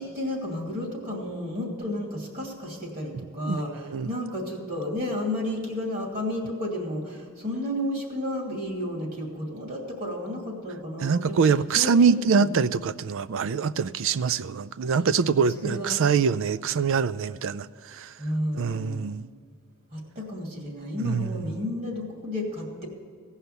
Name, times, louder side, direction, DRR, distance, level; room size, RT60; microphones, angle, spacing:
voice 1, 0.0-11.4 11.7-12.5 14.9-15.1 15.5-16.3 18.2-19.1 19.9-22.9, left 1 dB, 45° right, 2.6 m, -32 dB
voice 2, 3.5-4.1 11.0-18.1 18.5-19.3 21.0-21.3, right 5 dB, 65° right, 0.4 m, -24 dB
16.5 x 5.7 x 8.0 m
head